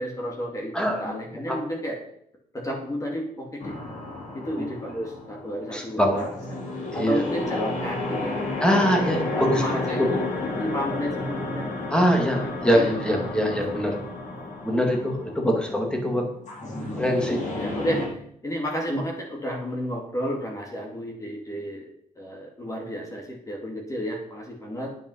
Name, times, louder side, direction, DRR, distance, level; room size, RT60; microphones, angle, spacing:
voice 1, 0.0-2.0 2.5-3.8 4.3-6.4 6.9-8.4 8.8-11.6 12.4-13.4 13.8-13.9 15.4-15.6 16.6-17.0 17.5-21.9 22.2-24.9, equal, 20° left, 0 dB, 2.5 m, -32 dB
voice 2, 0.7-1.1 1.5-1.6 4.6-4.7 4.9-5.1 5.7-6.2 6.9-7.2 8.6-9.8 11.9-13.9 14.6-16.3 17.0-17.4 18.9-19.0, equal, 5° left, 2 dB, 2.5 m, -23 dB
sound 1, 3.6-18.1, left 2 dB, 55° left, 3.9 m, -32 dB
9.3 x 9.2 x 5.6 m, 0.66 s
wide cardioid pair, 150°, 15 cm